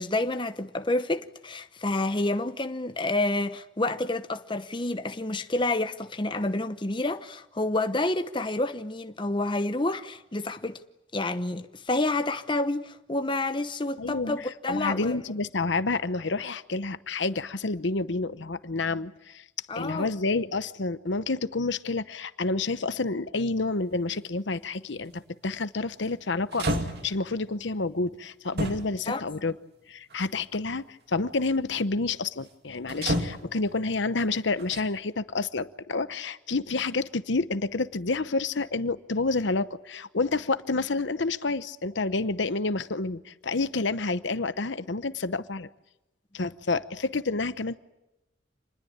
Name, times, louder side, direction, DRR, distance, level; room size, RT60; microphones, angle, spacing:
voice 1, 0.0-10.8 11.1-15.2 19.7-20.1 29.1-29.2, left 2 dB, 25° left, 0.9 m, -29 dB
voice 2, 14.0-14.3 14.7-19.4 19.7-26.7 27.0-29.5 29.9-45.7 46.3-47.8, left 3 dB, 70° left, 0.9 m, -29 dB
sound 1, 25.1-25.3 26.1-26.2 26.5-27.3 28.6-29.1 30.1-30.2 32.9-33.8 34.6-34.8, right 1 dB, 55° right, 2.8 m, -30 dB
27.5 x 21.0 x 8.8 m
head